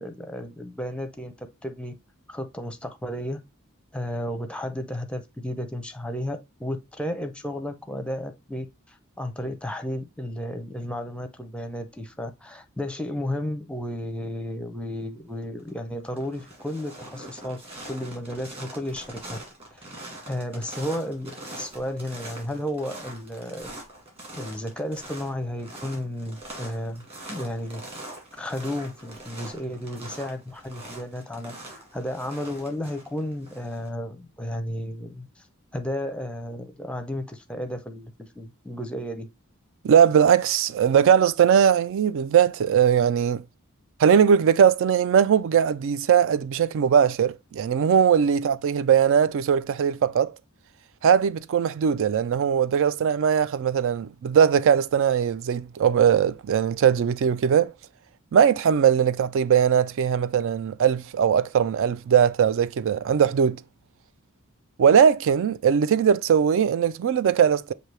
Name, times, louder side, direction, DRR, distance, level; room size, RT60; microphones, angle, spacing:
voice 1, 0.0-1.9 2.3-3.4 3.9-19.4 19.7-19.8 20.3-23.8 24.4-27.8 28.4-35.4 35.7-39.3, left 1 dB, 5° left, 0.6 m, -33 dB
sound 1, 15.3-15.7 16.0-33.9, right 1 dB, 30° right, 1.9 m, -42 dB
voice 2, 39.8-43.4 44.0-50.3 51.0-57.7 58.3-63.6 64.8-67.7, right 8 dB, 60° right, 0.3 m, -20 dB
6.0 x 2.7 x 3.2 m
head